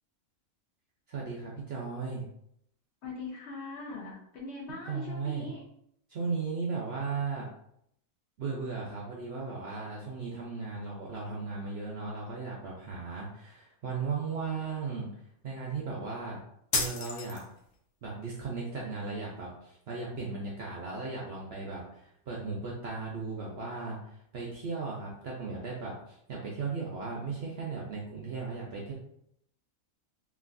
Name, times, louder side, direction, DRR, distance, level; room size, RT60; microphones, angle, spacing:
voice 1, 1.1-2.2 4.9-5.4 6.1-7.5 8.4-15.1 15.4-16.4 16.7-17.4 18.0-28.9, right 4 dB, 60° right, -3 dB, 0.6 m, -36 dB
voice 2, 3.0-5.6, left 3 dB, 60° left, -4 dB, 0.8 m, -41 dB
sound 1, 16.7-17.7, left 4 dB, 85° left, 1.1 m, -32 dB
3.0 x 2.6 x 2.5 m, 0.72 s
omnidirectional pair, 1.6 m